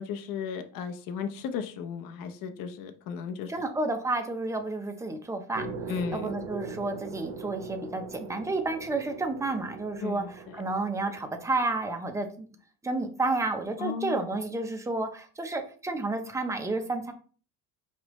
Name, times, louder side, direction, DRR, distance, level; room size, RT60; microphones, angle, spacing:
voice 1, 0.0-3.5 5.9-6.3 10.0-10.6 13.8-14.3, left 7 dB, 60° left, 7 dB, 0.8 m, -35 dB
voice 2, 3.5-5.7 6.1-12.5 12.8-17.1, right 2 dB, 10° right, 5 dB, 0.7 m, -31 dB
sound 1, 5.5-11.8, right 3 dB, 70° right, 0.9 m, -41 dB
4.8 x 3.2 x 3.1 m, 0.39 s
cardioid pair, 115°, 37 cm